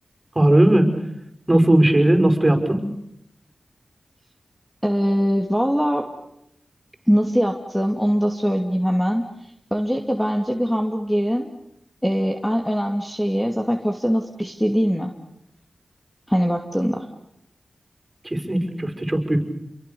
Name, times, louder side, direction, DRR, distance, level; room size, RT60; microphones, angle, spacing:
voice 1, 0.4-0.9 1.5-2.9 18.2-19.4, right 1 dB, 25° right, 5 dB, 5.8 m, -17 dB
voice 2, 4.8-6.1 7.1-9.2 9.7-11.5 12.0-15.1 16.3-17.1, equal, 5° left, 4 dB, 2.6 m, -22 dB
28.5 x 23.5 x 7.0 m, 0.77 s
cardioid pair, 45°, 0 cm